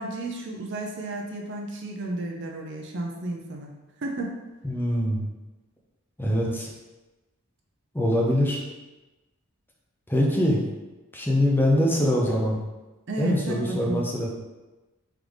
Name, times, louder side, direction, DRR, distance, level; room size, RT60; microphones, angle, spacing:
voice 1, 0.0-3.7 4.0-4.3 13.1-14.1, right 2 dB, 55° right, 0 dB, 0.6 m, -32 dB
voice 2, 4.6-5.3 6.2-6.7 7.9-8.6 10.1-10.6 11.1-12.6 13.2-14.3, left 1 dB, 10° left, -3 dB, 0.6 m, -23 dB
3.8 x 3.4 x 3.1 m, 1.1 s
head